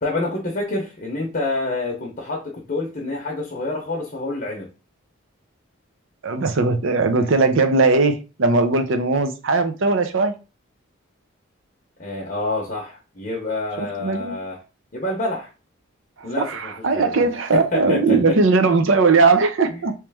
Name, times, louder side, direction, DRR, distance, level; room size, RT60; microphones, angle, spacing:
voice 1, 0.0-4.7 12.0-14.6 14.9-15.5 16.2-17.3 17.5-18.4, left 2 dB, 40° left, 0.7 m, -27 dB
voice 2, 6.2-10.3 13.8-14.4 16.2-19.9, right 3 dB, 65° right, 0.6 m, -19 dB
3.2 x 3.0 x 3.4 m
head